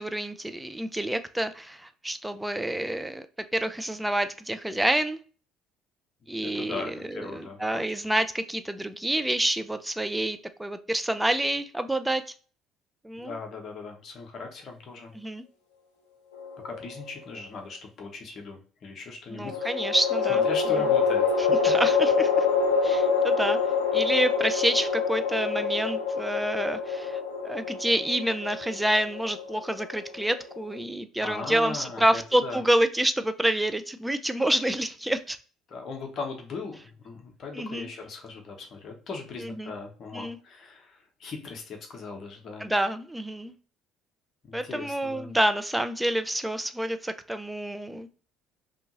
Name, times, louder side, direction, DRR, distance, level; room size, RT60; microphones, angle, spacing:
voice 1, 0.0-5.2 6.3-12.2 13.0-13.4 15.1-15.4 19.3-20.4 21.6-22.5 22.8-23.6 23.9-35.4 37.6-37.9 39.4-39.7 40.1-40.4 42.6-43.5 44.5-48.1, right 1 dB, 10° right, 10 dB, 0.3 m, -28 dB
voice 2, 6.4-7.8 13.2-15.1 16.6-19.7 20.3-21.2 31.2-32.6 35.7-42.7 44.4-45.3, left 4 dB, 45° left, 2 dB, 0.8 m, -38 dB
sound 1, 16.4-17.2 19.5-30.8, left 5 dB, 80° left, 0.5 m, -26 dB
2.7 x 2.7 x 2.6 m, 0.40 s
figure-of-eight pair, 55°, 0 cm